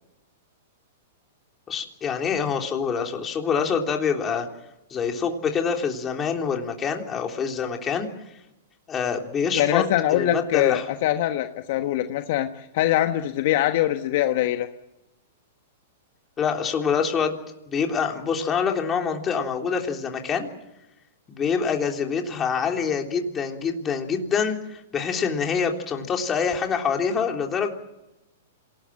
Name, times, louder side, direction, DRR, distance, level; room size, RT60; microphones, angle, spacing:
voice 1, 1.7-4.5 4.9-8.1 8.9-9.8 10.1-10.8 16.4-17.4 17.7-20.5 21.3-27.7, left 6 dB, 20° left, 3 dB, 3.5 m, -26 dB
voice 2, 9.5-14.7, left 13 dB, 55° left, 7 dB, 1.3 m, -23 dB
27.0 x 19.0 x 7.6 m, 0.94 s
hypercardioid pair, 130°, 0 cm